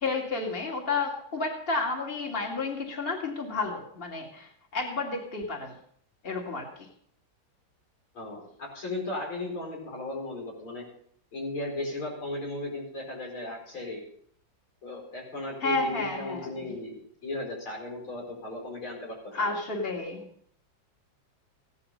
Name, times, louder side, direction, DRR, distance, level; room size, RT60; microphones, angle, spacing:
voice 1, 0.0-5.7 6.2-6.7 15.6-16.8 19.3-20.2, left 3 dB, 30° left, 1 dB, 2.5 m, -31 dB
voice 2, 8.1-10.8 11.3-14.0 14.8-19.5, left 2 dB, 90° left, -1 dB, 5.6 m, -36 dB
16.5 x 11.0 x 5.3 m, 0.63 s
omnidirectional pair, 2.2 m